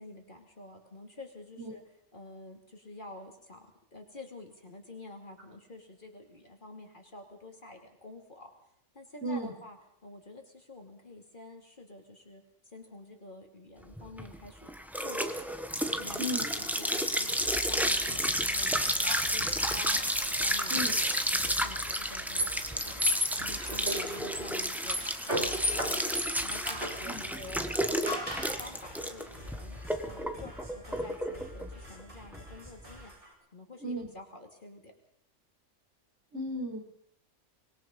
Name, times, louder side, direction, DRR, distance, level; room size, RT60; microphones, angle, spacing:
voice 1, 0.0-1.8 2.1-8.5 8.9-9.8 10.0-14.7 15.0-15.6 15.9-20.0 20.3-23.1 23.4-26.0 26.4-27.6 27.9-28.1 28.6-33.1 33.5-34.9, left 2 dB, 40° left, 3 dB, 2.9 m, -49 dB
voice 2, 9.2-9.5 16.2-16.5 20.7-20.9 23.5-23.8 25.3-25.4 27.0-27.2 33.8-34.1 36.3-36.8, right 1 dB, 60° right, 0 dB, 5.9 m, -34 dB
sound 1, 13.9-33.0, equal, ahead, 1.3 m, -31 dB
sound 2, 17.3-33.3, left 1 dB, 40° right, 6.7 m, -49 dB
sound 3, 19.0-20.9 21.9-27.0 28.1-28.7, left 1 dB, 20° right, 3.2 m, -36 dB
25.0 x 21.0 x 5.4 m, 0.68 s
omnidirectional pair, 1.3 m